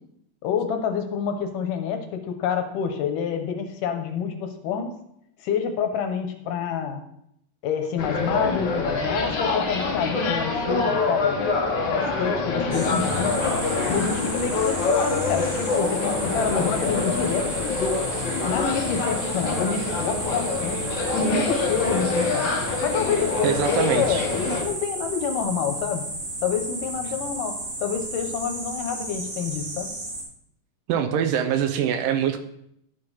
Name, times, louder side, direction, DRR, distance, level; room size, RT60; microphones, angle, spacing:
voice 1, 0.4-4.9 5.4-7.0 7.6-13.4 13.9-17.5 17.8-18.0 18.4-20.8 21.1-22.5 22.8-26.0 26.4-29.9, left 7 dB, 75° left, 6 dB, 2.4 m, -27 dB
sound 1, 8.0-24.6, left 3 dB, 55° left, 1.3 m, -26 dB
sound 2, 12.7-30.2, right 2 dB, 30° right, 2.0 m, -33 dB
voice 2, 23.4-24.2 30.9-32.4, right 8 dB, 75° right, 7 dB, 2.3 m, -23 dB
11.0 x 5.1 x 5.6 m, 0.74 s
omnidirectional pair, 4.0 m